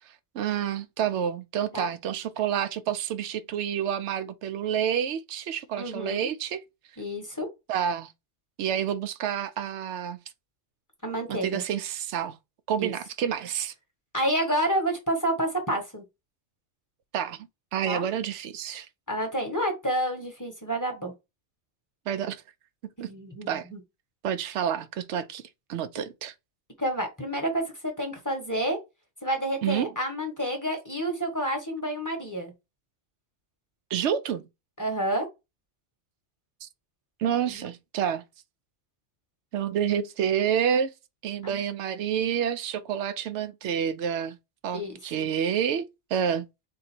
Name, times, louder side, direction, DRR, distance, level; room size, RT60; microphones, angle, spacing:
voice 1, 0.3-6.6 7.7-8.1 8.6-10.2 11.3-12.4 12.7-13.7 17.1-18.9 22.1-22.4 23.0-23.1 23.5-23.7 24.2-25.4 25.7-26.3 29.6-29.9 33.9-34.4 36.6-36.7 37.2-38.2 39.5-40.9 41.2-44.4 44.6-45.9 46.1-46.5, right 8 dB, 85° right, 0.9 m, -28 dB
voice 2, 5.8-6.3 7.0-7.5 11.0-11.6 12.8-12.9 14.1-16.0 17.8-18.1 19.1-21.1 23.0-23.8 26.0-26.1 26.8-28.8 29.2-32.5 34.8-35.3 37.5-37.7 41.4-41.6 44.7-45.3, right 1 dB, 15° left, 1.0 m, -29 dB
3.8 x 2.6 x 4.3 m
omnidirectional pair, 1.1 m